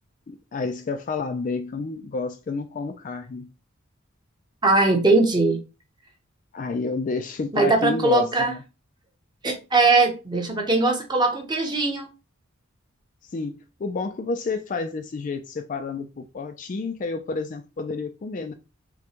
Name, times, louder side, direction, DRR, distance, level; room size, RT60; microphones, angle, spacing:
voice 1, 0.3-3.5 6.5-8.6 13.3-18.5, left 4 dB, 35° left, 0.3 m, -30 dB
voice 2, 4.6-5.6 7.5-8.5 9.4-12.1, right 3 dB, 20° right, 0.8 m, -20 dB
6.0 x 2.2 x 2.9 m
head